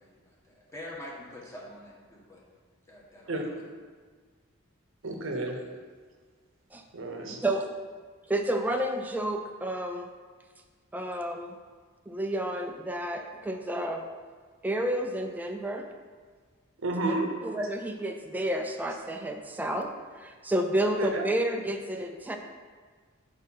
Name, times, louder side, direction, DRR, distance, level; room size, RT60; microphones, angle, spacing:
voice 1, 0.0-2.4 2.9-3.6, left 1 dB, 15° left, -5 dB, 1.3 m, -45 dB
voice 2, 5.0-5.6 6.9-7.4 16.8-17.3 20.8-21.2, right 2 dB, 65° right, 3 dB, 0.8 m, -31 dB
voice 3, 8.3-10.1 10.9-11.6 12.1-14.0 14.6-15.9 17.4-22.4, right 1 dB, 10° right, 3 dB, 0.3 m, -30 dB
4.9 x 4.3 x 5.6 m, 1.5 s
head